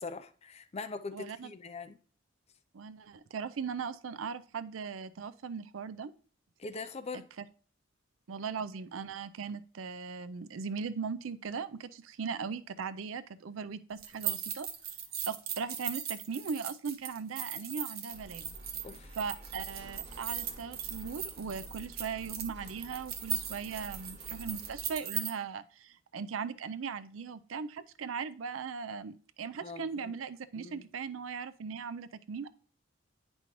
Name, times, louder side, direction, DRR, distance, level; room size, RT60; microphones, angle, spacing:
voice 1, 0.0-2.0 6.6-7.3 18.8-19.2 29.6-30.1 30.6-30.9, left 4 dB, 30° left, 0.5 m, -42 dB
voice 2, 1.1-1.5 2.7-6.1 8.3-14.7 15.3-18.5 19.2-32.5, right 5 dB, 85° right, 0.5 m, -39 dB
sound 1, 14.0-25.3, right 9 dB, 50° right, 0.8 m, -38 dB
sound 2, 18.1-24.9, right 1 dB, 35° right, 2.7 m, -51 dB
9.5 x 5.4 x 3.0 m
head